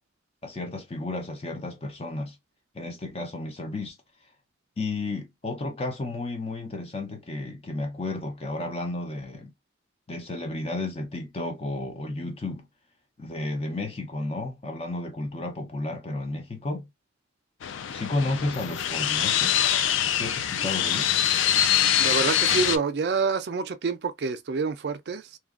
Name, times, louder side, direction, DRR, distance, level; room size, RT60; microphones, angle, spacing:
voice 1, 0.4-2.4 2.7-4.0 4.8-9.5 10.1-12.7 13.2-16.8 17.9-19.6 20.1-21.2, left 2 dB, 30° left, 0.5 m, -32 dB
sound 1, 17.6-22.8, left 10 dB, 85° left, 0.4 m, -24 dB
voice 2, 22.0-25.4, right 4 dB, 55° right, 0.3 m, -27 dB
2.8 x 2.3 x 2.3 m
head